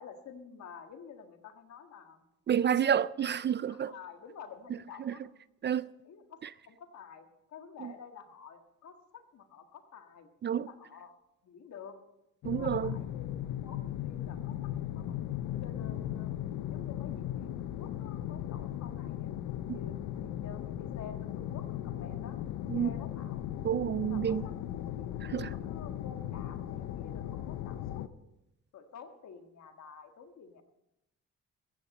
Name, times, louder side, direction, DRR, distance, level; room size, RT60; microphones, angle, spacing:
voice 1, 0.0-2.2 3.7-5.2 6.0-10.3 10.6-11.1 11.4-12.0 12.5-16.3 16.7-23.4 24.0-28.1 28.7-30.6, left 6 dB, 65° left, 1.8 m, -50 dB
voice 2, 2.5-3.9 5.1-5.2 5.6-5.9 7.8-7.9 10.4-10.7 12.4-13.0 19.7-19.8 22.7-22.9 23.6-24.4 25.3-25.5, right 9 dB, 35° right, 0.4 m, -29 dB
sound 1, 12.4-28.1, left 12 dB, 85° left, 0.7 m, -37 dB
15.5 x 15.0 x 4.2 m
cardioid pair, 90°, 30 cm